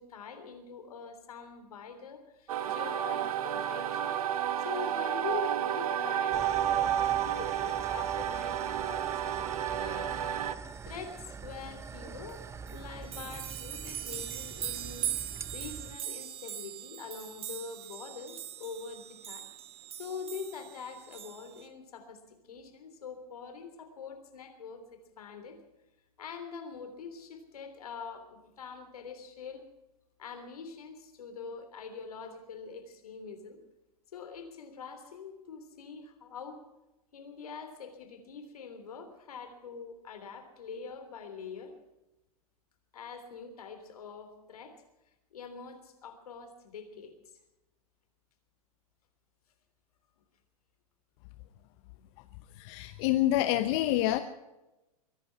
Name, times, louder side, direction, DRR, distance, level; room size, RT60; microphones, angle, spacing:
voice 1, 0.0-4.2 4.6-10.4 10.8-15.1 15.5-19.5 19.9-25.6 26.2-29.7 30.2-33.6 34.1-36.6 37.1-41.7 42.9-44.8 45.3-47.1, left 5 dB, 75° left, 8 dB, 3.3 m, -44 dB
sound 1, 2.5-10.5, right 10 dB, 70° right, 1.3 m, -31 dB
sound 2, 6.3-16.0, right 5 dB, 15° right, 0.7 m, -45 dB
sound 3, 12.3-12.4 12.7-21.7, right 11 dB, 30° right, 1.7 m, -40 dB
voice 2, 52.6-54.2, left 14 dB, 50° left, 10 dB, 0.9 m, -27 dB
23.0 x 11.0 x 5.7 m, 0.98 s
hypercardioid pair, 105°, 19 cm